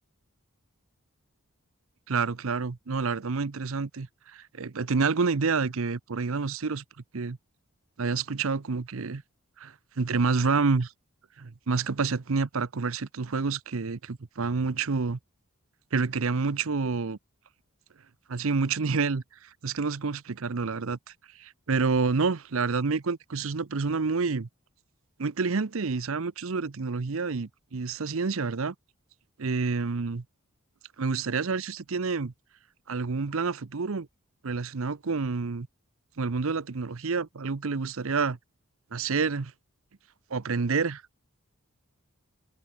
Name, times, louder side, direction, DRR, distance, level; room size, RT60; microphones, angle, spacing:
voice 1, 2.1-6.8 7.1-7.4 8.0-9.2 9.6-10.9 11.4-15.2 15.9-17.2 18.3-21.0 21.4-24.5 25.2-28.7 29.4-30.2 31.0-32.3 32.9-34.1 34.4-35.7 36.2-38.4 38.9-39.5 40.3-41.0, right 4 dB, 65° right, 0.7 m, -28 dB
head